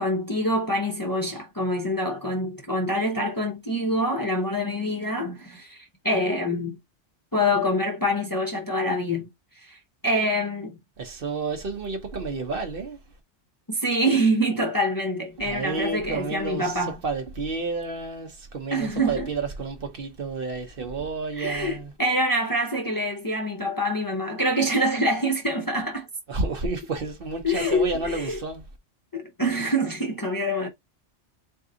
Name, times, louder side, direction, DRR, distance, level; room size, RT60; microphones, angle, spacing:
voice 1, 0.0-6.8 7.3-9.3 9.6-10.8 13.7-17.0 18.7-19.3 21.4-26.1 27.4-28.4 29.1-30.7, equal, 20° left, 0.7 m, -25 dB
voice 2, 11.0-13.0 15.4-21.9 26.3-28.6, right 4 dB, 55° right, 1.1 m, -30 dB
3.9 x 2.7 x 3.7 m
omnidirectional pair, 1.2 m